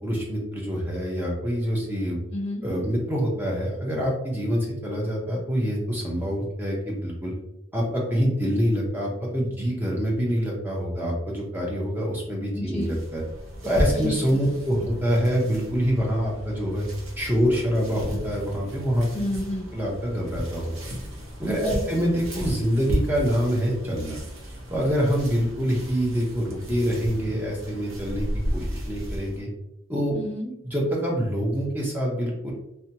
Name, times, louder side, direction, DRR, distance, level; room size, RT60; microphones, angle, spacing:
voice 1, 0.0-2.2 2.6-7.3 7.7-13.2 13.6-16.8 17.2-19.1 19.7-20.7 21.4-24.2 24.7-28.3 28.5-29.5 29.9-30.2 30.6-32.5, equal, 10° right, -3 dB, 0.6 m, -25 dB
voice 2, 2.3-2.6 12.5-12.9 13.9-14.1 19.1-19.7 21.6-21.8 30.1-30.5, left 1 dB, 30° left, -2 dB, 0.7 m, -30 dB
sound 1, 12.8-29.4, equal, 70° right, 0.7 m, -34 dB
2.7 x 2.2 x 2.7 m, 0.85 s
head